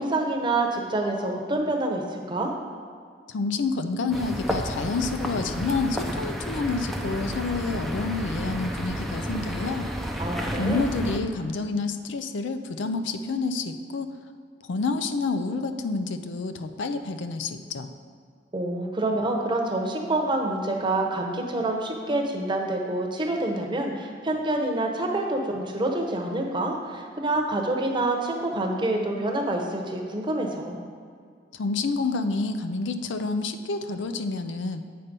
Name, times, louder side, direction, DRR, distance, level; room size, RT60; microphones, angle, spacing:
voice 1, 0.0-2.5 10.2-10.8 18.5-30.8, right 2 dB, 25° right, 1 dB, 0.9 m, -27 dB
voice 2, 3.3-9.9 10.6-14.2 14.7-17.9 31.5-34.8, left 3 dB, 80° left, 9 dB, 0.5 m, -28 dB
sound 1, 4.1-11.2, equal, ahead, 0.5 m, -31 dB
8.4 x 4.2 x 5.2 m, 2.1 s
head